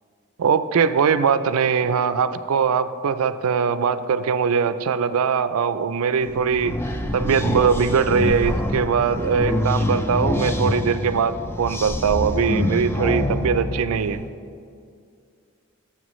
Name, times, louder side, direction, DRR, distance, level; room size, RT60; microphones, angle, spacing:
voice 1, 0.4-6.8 7.1-14.2, right 6 dB, 80° right, 13 dB, 0.4 m, -21 dB
sound 1, 6.2-14.3, left 1 dB, 10° left, 0.3 m, -26 dB
12.5 x 7.4 x 3.1 m, 2.4 s
head